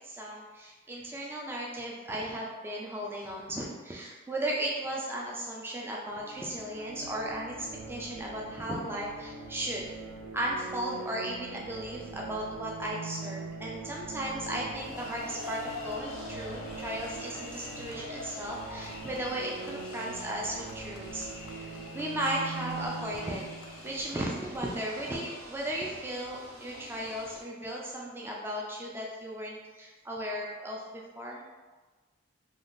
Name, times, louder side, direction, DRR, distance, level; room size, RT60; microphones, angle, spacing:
voice 1, 0.0-9.9 10.3-21.7 21.9-23.5 23.8-31.4, right 1 dB, 10° right, -3 dB, 0.3 m, -36 dB
sound 1, 6.2-24.8, right 3 dB, 85° right, 0.4 m, -43 dB
sound 2, 14.5-25.6, left 3 dB, 80° left, 0.4 m, -46 dB
sound 3, 14.8-27.4, right 1 dB, 45° right, 0.6 m, -50 dB
3.5 x 2.3 x 2.5 m, 1.3 s
head